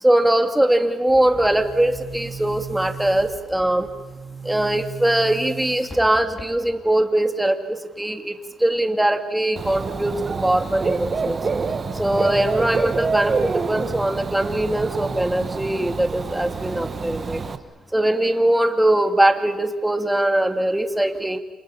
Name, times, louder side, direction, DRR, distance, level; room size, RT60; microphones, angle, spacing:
voice 1, 0.0-3.9 4.4-10.1 10.4-11.4 11.9-17.4 17.9-21.4, right 1 dB, 5° right, 7 dB, 2.3 m, -21 dB
Boom, 1.1-6.9, right 5 dB, 20° left, 4.6 m, -37 dB
Dog / Bird, 9.6-17.6, right 4 dB, 35° right, 1.6 m, -27 dB
28.5 x 27.0 x 7.2 m, 1.2 s
cardioid pair, 90°, 0 cm